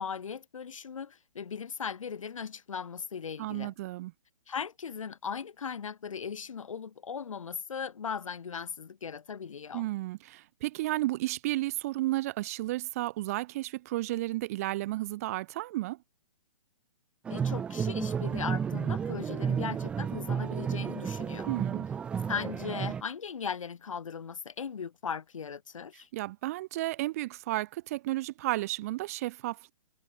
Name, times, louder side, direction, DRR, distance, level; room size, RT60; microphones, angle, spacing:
voice 1, 0.0-3.7 4.5-9.9 17.3-21.5 22.3-26.1, left 6 dB, 80° left, 3.9 m, -38 dB
voice 2, 3.4-4.1 9.7-16.0 21.5-21.8 26.1-29.7, right 17 dB, 30° right, 0.9 m, -33 dB
sound 1, 17.2-23.0, right 7 dB, 5° right, 0.5 m, -32 dB
hypercardioid pair, 160°, 17 cm